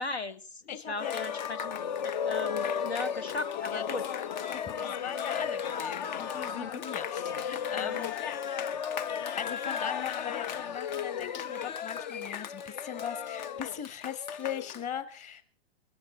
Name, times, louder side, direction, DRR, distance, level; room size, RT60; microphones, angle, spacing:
voice 1, 0.0-4.3 6.5-6.8 7.7-8.0, left 3 dB, 75° left, 14 dB, 1.2 m, -38 dB
voice 2, 0.7-1.3 3.7-4.0 4.5-8.1 9.4-15.4, left 8 dB, 20° left, 12 dB, 1.5 m, -39 dB
Cheering, 1.0-14.8, left 8 dB, 45° left, 0.6 m, -34 dB
20.0 x 13.5 x 4.4 m, 0.40 s
figure-of-eight pair, 115°, 33 cm